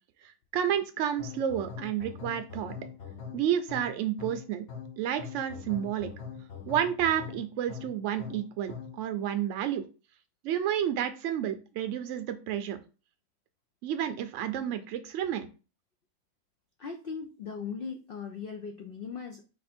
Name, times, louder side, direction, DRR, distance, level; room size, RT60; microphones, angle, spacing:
voice 1, 0.2-2.8 3.3-4.7 5.0-6.1 6.7-9.8 10.4-12.8 13.8-15.5, right 10 dB, 65° right, 9 dB, 0.8 m, -30 dB
sound 1, 1.2-9.1, left 6 dB, 55° left, 1.0 m, -43 dB
voice 2, 16.8-19.4, left 5 dB, 75° left, 4 dB, 0.5 m, -38 dB
4.2 x 2.5 x 4.2 m, 0.33 s
omnidirectional pair, 1.6 m